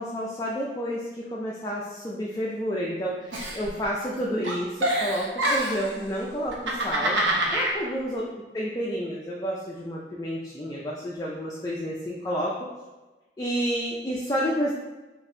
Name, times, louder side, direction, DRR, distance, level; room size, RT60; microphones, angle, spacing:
voice 1, 0.0-8.2 8.5-12.7 13.4-14.7, equal, 20° left, -4 dB, 0.3 m, -30 dB
Giggle, 3.3-4.2 4.4-5.9 6.5-7.8, right 1 dB, 85° right, 0.8 m, -26 dB
5.2 x 2.5 x 2.7 m, 1.2 s
head